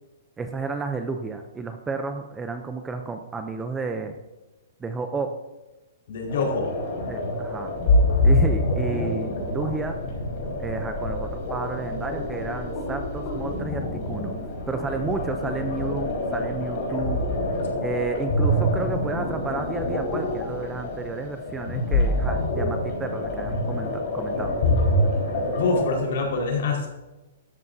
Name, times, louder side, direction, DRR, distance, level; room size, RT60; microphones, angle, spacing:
voice 1, 0.4-4.2 4.8-5.3 7.1-7.8 8.2-10.0 10.6-14.3 14.7-17.2 17.8-24.5, right 4 dB, 5° right, 6 dB, 0.5 m, -31 dB
voice 2, 6.1-6.7 25.4-26.9, left 3 dB, 50° left, 0 dB, 4.4 m, -25 dB
sound 1, 6.3-26.0, left 1 dB, 30° left, 4.7 m, -26 dB
16.5 x 13.5 x 2.7 m, 1.1 s
hypercardioid pair, 180°, 0 cm